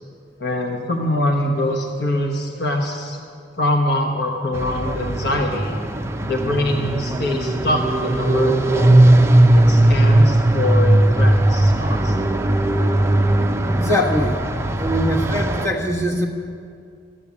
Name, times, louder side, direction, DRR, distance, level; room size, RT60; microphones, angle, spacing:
voice 1, 0.4-3.2 3.6-5.7 6.2-9.0 9.5-12.5, left 1 dB, 60° left, 2 dB, 1.1 m, -24 dB
sound 1, 4.5-15.7, right 1 dB, 15° right, 0.5 m, -17 dB
voice 2, 13.8-14.4 14.8-16.3, equal, 15° left, -2 dB, 1.4 m, -22 dB
13.5 x 7.5 x 8.5 m, 2.4 s
head